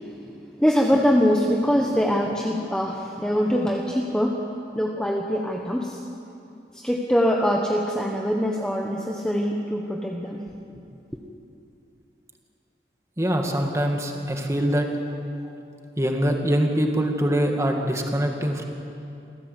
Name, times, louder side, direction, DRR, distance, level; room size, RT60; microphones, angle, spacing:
voice 1, 0.6-4.4 4.7-6.0 6.7-10.4, equal, 5° left, 0 dB, 1.3 m, -23 dB
voice 2, 13.2-14.9 16.0-18.6, equal, 15° right, 2 dB, 2.2 m, -23 dB
27.5 x 15.5 x 8.4 m, 2.7 s
head